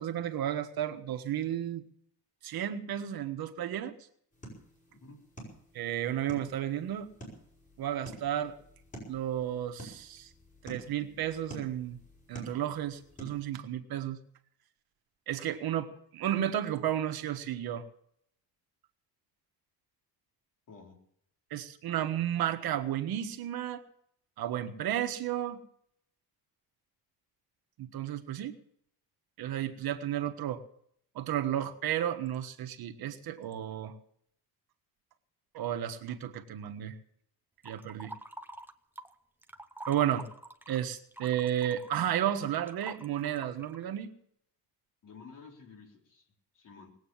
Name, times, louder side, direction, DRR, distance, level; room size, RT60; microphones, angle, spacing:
voice 1, 0.0-1.9 2.4-3.9 5.7-7.1 7.8-8.6 9.1-10.3 10.6-12.0 12.3-14.2 15.3-17.8 21.5-23.8 24.4-25.6 27.8-28.5 29.4-30.6 31.1-33.9 35.5-36.9 37.6-38.1 39.9-40.3 40.7-44.1, right 11 dB, 65° right, 7 dB, 1.5 m, -33 dB
sound 1, 4.3-13.5, right 1 dB, 20° left, 6.5 m, -50 dB
voice 2, 20.7-21.0 45.0-46.3 46.5-46.9, left 4 dB, 50° left, 1 dB, 4.2 m, -52 dB
sound 2, 37.6-39.1 39.4-43.8, right 1 dB, 5° right, 0.8 m, -46 dB
19.5 x 8.7 x 7.2 m, 0.68 s
cardioid pair, 150°, 39 cm